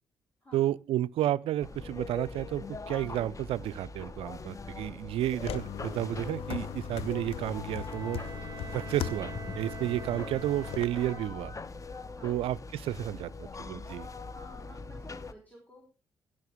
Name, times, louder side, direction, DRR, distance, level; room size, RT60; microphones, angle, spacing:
voice 1, 0.5-8.2 8.7-11.5 12.2-14.1, right 13 dB, 65° right, 0.4 m, -32 dB
sound 1, 1.6-15.3, left 3 dB, 30° left, 1.0 m, -42 dB
sound 2, 5.4-10.8, left 10 dB, 65° left, 0.8 m, -39 dB
Bowed string instrument, 7.7-11.7, right 6 dB, 40° right, 0.8 m, -46 dB
voice 2, 14.3-15.9, equal, 15° left, 4.1 m, -54 dB
16.0 x 6.5 x 3.6 m
hypercardioid pair, 45°, 10 cm